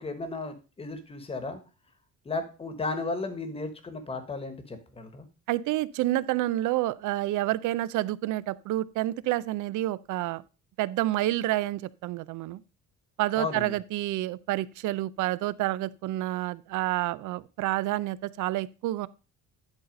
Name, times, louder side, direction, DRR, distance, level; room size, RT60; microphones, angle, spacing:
voice 1, 0.0-1.6 2.2-5.3 13.4-13.8, left 3 dB, 20° left, 1.1 m, -34 dB
voice 2, 5.5-10.4 10.8-12.6 13.2-19.1, right 15 dB, 80° right, 0.5 m, -29 dB
10.5 x 4.1 x 5.2 m
cardioid pair, 170°, 30 cm